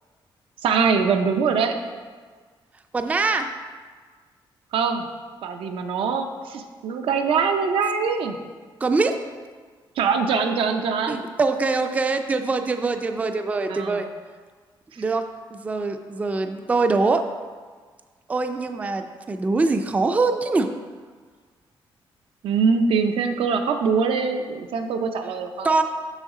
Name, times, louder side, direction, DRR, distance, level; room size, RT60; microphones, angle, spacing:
voice 1, 0.6-1.8 4.7-5.1 5.4-8.4 10.0-11.2 13.7-14.1 22.4-25.7, right 5 dB, 85° right, 6 dB, 0.6 m, -23 dB
voice 2, 2.9-3.5 8.8-9.2 11.1-14.1 15.0-15.2 15.5-17.2 18.3-20.7 25.6-25.8, right 3 dB, 15° right, 7 dB, 0.3 m, -23 dB
6.4 x 6.2 x 3.7 m, 1.5 s
wide cardioid pair, 150°, 9 cm